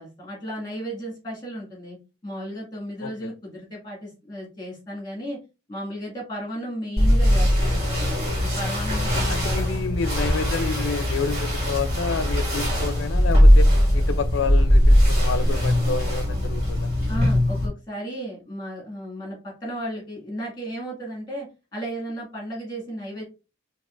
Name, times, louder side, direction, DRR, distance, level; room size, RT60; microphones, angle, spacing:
voice 1, 0.0-2.0 2.2-5.4 5.7-9.7 17.1-23.2, equal, 20° left, 1.8 m, -34 dB
voice 2, 3.0-3.3 9.3-16.9, left 4 dB, 75° left, 0.4 m, -29 dB
sound 1, 7.0-17.7, equal, 35° right, 2.2 m, -20 dB
5.2 x 2.8 x 2.4 m
head